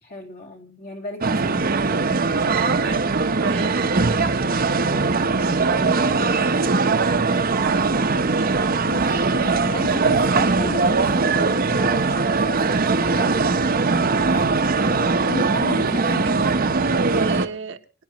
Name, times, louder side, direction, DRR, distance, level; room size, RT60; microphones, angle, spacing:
voice 1, 0.0-1.8 5.0-7.0 8.1-13.8 14.3-17.2, left 2 dB, 50° left, 2 dB, 3.0 m, -36 dB
sound 1, 1.2-17.5, right 4 dB, 45° right, 0.9 m, -20 dB
voice 2, 2.4-4.0 16.1-17.8, right 3 dB, 65° right, 7 dB, 1.1 m, -31 dB
29.5 x 10.0 x 3.0 m, 0.33 s
head